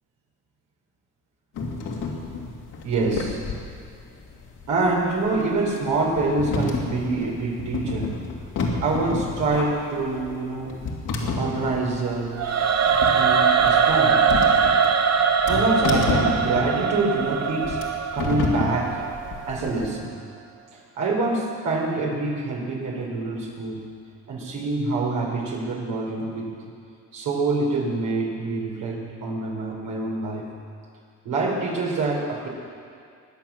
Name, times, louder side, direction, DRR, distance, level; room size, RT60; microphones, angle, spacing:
sound 1, 1.5-19.9, left 3 dB, 85° left, 2.6 m, -30 dB
voice 1, 2.8-3.4 4.7-8.2 8.8-10.8 11.4-12.4 13.1-14.3 15.5-17.8 18.1-19.0 19.5-20.1 21.0-23.9 24.3-26.6 27.1-30.5 31.2-32.5, right 3 dB, 85° right, -2 dB, 4.5 m, -26 dB
Singing / Musical instrument, 12.4-19.5, right 6 dB, 60° right, 1.2 m, -21 dB
22.0 x 8.3 x 7.3 m, 2.3 s
cardioid pair, 90°, 30 cm